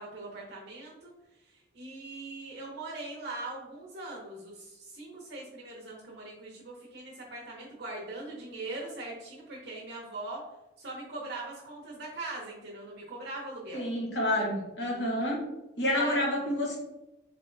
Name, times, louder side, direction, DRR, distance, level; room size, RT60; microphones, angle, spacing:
voice 1, 0.0-10.4 10.8-13.9 14.9-15.3 15.9-16.2, right 2 dB, 55° right, -4 dB, 0.7 m, -41 dB
voice 2, 13.7-15.4 15.8-16.8, left 1 dB, 65° left, -2 dB, 1.1 m, -29 dB
3.7 x 3.4 x 2.5 m, 0.96 s
head